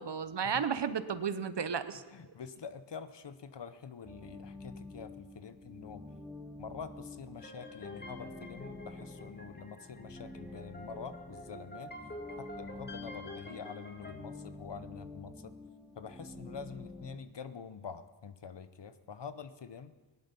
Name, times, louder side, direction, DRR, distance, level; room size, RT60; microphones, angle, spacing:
voice 1, 0.0-2.0, right 7 dB, 65° right, 12 dB, 0.9 m, -33 dB
voice 2, 2.1-6.0 6.6-11.9 12.4-15.6 16.0-19.9, left 6 dB, 65° left, 12 dB, 0.9 m, -46 dB
sound 1, 4.0-17.2, left 2 dB, ahead, 1.1 m, -49 dB
sound 2, 7.4-14.1, left 1 dB, 20° left, 2.0 m, -48 dB
17.5 x 11.5 x 5.4 m, 1.2 s
wide cardioid pair, 60°, 45 cm